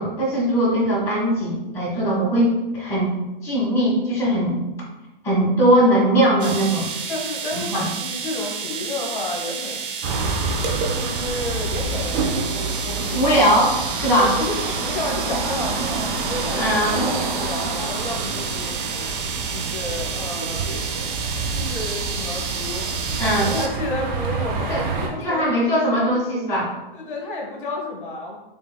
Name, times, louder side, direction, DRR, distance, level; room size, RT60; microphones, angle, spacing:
voice 1, 0.0-3.1 3.4-4.6 5.2-6.9 7.5-7.9 13.1-14.3 16.5-17.1 23.2-23.5 24.7-24.8 25.2-26.7, right 1 dB, 10° left, -6 dB, 1.3 m, -20 dB
sound 1, 6.4-23.7, right 6 dB, 65° right, 0.8 m, -30 dB
voice 2, 7.1-9.9 10.9-12.5 12.8-13.5 14.1-16.6 16.9-18.8 19.5-20.7 21.5-22.9 23.4-26.1 26.9-28.4, left 2 dB, 60° left, 0 dB, 1.1 m, -31 dB
sound 2, 10.0-25.1, right 3 dB, 15° right, 0.3 m, -28 dB
5.2 x 3.3 x 2.2 m, 1.0 s
hypercardioid pair, 130°, 29 cm